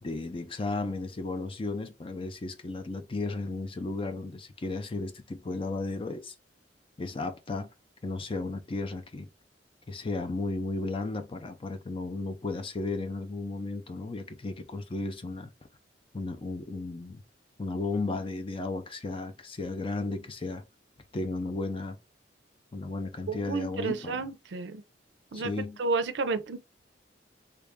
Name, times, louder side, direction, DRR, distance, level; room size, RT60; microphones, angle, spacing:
voice 1, 0.0-6.3 7.0-7.7 8.0-9.3 9.9-15.5 16.1-17.2 17.6-20.6 21.1-22.0 22.7-24.2 25.3-25.8, left 3 dB, 30° left, 0.5 m, -34 dB
voice 2, 23.3-24.8 25.3-25.5 25.8-26.6, right 4 dB, 75° right, 0.5 m, -31 dB
3.2 x 2.4 x 3.5 m
head